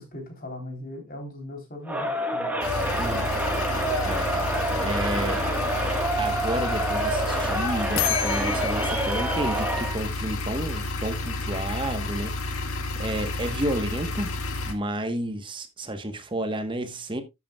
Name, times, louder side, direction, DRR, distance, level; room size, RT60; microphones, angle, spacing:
voice 1, 0.0-2.7, left 1 dB, 40° left, 3.6 m, -39 dB
Crowd, 1.9-10.0, right 1 dB, 5° right, 1.4 m, -27 dB
sound 1, 2.6-14.7, left 2 dB, 85° left, 1.8 m, -31 dB
voice 2, 3.0-3.5 4.0-5.4 6.2-12.6 13.0-14.3 14.6-17.2, right 1 dB, 20° right, 1.1 m, -31 dB
sound 2, 8.0-10.7, left 10 dB, 65° left, 1.0 m, -32 dB
12.5 x 8.4 x 2.3 m
head